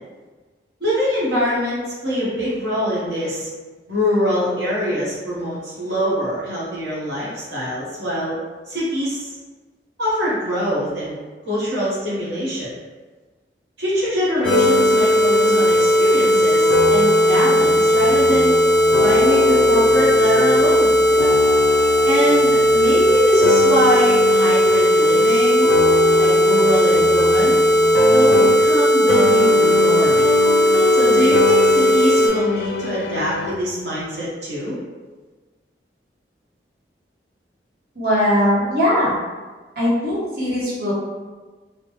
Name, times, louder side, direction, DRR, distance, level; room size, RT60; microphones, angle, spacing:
voice 1, 0.8-3.5 3.9-8.4 8.7-9.3 10.0-11.2 11.5-12.7 13.8-18.5 19.0-20.9 22.0-25.7 26.2-27.5 28.1-30.2 30.9-34.8, equal, 85° right, -7 dB, 1.1 m, -23 dB
sound 1, 14.4-28.8 29.1-33.5, left 4 dB, 85° left, 0.4 m, -24 dB
sound 2, 14.4-32.3, equal, 5° left, 0.5 m, -16 dB
voice 2, 38.0-39.1 39.8-40.9, left 1 dB, 60° right, -8 dB, 1.0 m, -19 dB
3.3 x 2.1 x 3.0 m, 1.3 s
head